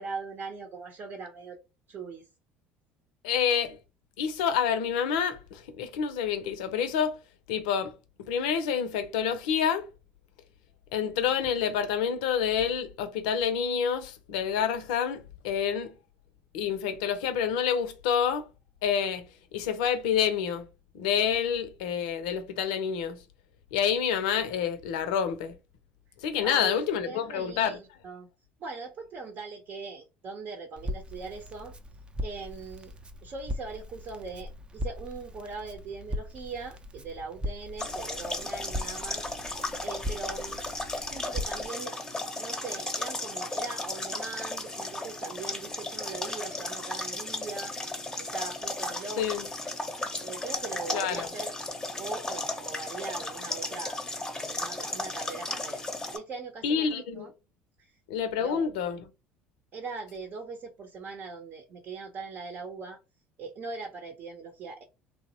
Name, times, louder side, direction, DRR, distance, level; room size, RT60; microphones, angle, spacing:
voice 1, 0.0-1.6 1.9-2.2 26.4-28.3 28.6-31.7 32.2-32.9 33.2-39.2 39.8-40.7 41.1-47.7 48.2-49.5 50.2-51.5 52.0-54.0 54.4-55.8 56.1-57.3 57.8-58.0 58.4-58.7 59.7-63.0 63.4-64.8, right 4 dB, 50° right, 0.8 m, -40 dB
voice 2, 3.2-3.8 4.2-7.2 7.5-7.9 8.2-9.9 10.9-15.9 16.5-18.4 18.8-20.7 20.9-23.2 23.7-25.6 26.2-27.8 49.2-49.4 50.9-51.3 56.6-57.3 58.1-59.0, left 8 dB, 80° left, 0.5 m, -28 dB
Crackle, 30.8-41.7, equal, 20° right, 0.5 m, -39 dB
sound 1, 37.8-56.2, left 2 dB, 15° left, 0.7 m, -35 dB
3.1 x 2.0 x 2.8 m
supercardioid pair, 80°, 4 cm